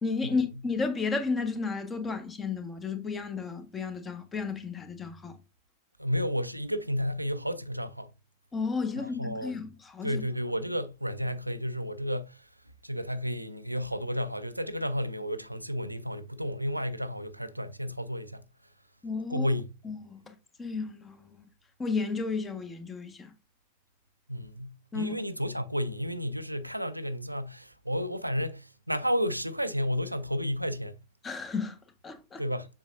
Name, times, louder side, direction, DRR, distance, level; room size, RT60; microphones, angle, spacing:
voice 1, 0.0-5.4 8.5-10.2 19.0-19.5 19.8-21.4 21.8-23.3 24.9-25.2 31.2-31.8 32.0-32.4, left 4 dB, 20° left, 1.3 m, -33 dB
voice 2, 6.0-8.1 9.0-9.6 10.0-12.4 12.8-18.4 19.3-19.7 24.3-31.0 32.4-32.7, equal, 90° right, 0.5 m, -32 dB
7.2 x 6.2 x 2.5 m
figure-of-eight pair, 90°, 0 cm